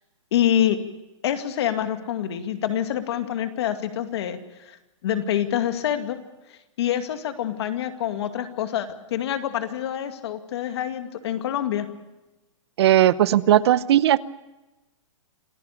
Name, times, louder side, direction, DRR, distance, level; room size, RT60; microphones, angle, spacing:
voice 1, 0.3-0.8 1.2-4.8 5.0-6.2 6.5-11.9, left 10 dB, 55° left, 8 dB, 2.3 m, -26 dB
voice 2, 12.8-14.2, right 12 dB, 55° right, 17 dB, 0.8 m, -17 dB
27.0 x 15.5 x 8.4 m, 1.0 s
hypercardioid pair, 155°, 17 cm